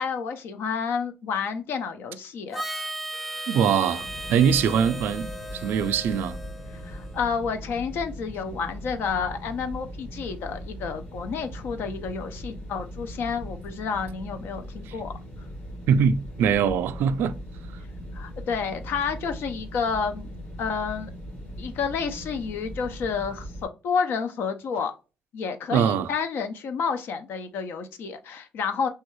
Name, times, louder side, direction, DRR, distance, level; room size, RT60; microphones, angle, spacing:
voice 1, 0.0-2.6 6.8-15.1 18.1-20.3 20.6-21.1 21.6-24.9 25.3-28.9, left 6 dB, 75° left, 0.5 m, -30 dB
Harmonica, 2.5-7.3, right 1 dB, 5° left, 0.5 m, -36 dB
voice 2, 3.5-6.4 14.9-15.0 15.9-17.3 25.7-26.1, right 7 dB, 80° right, 0.3 m, -23 dB
sound 1, 4.0-23.7, equal, 55° left, 1.7 m, -39 dB
3.3 x 2.3 x 3.1 m
cardioid pair, 120°, 4 cm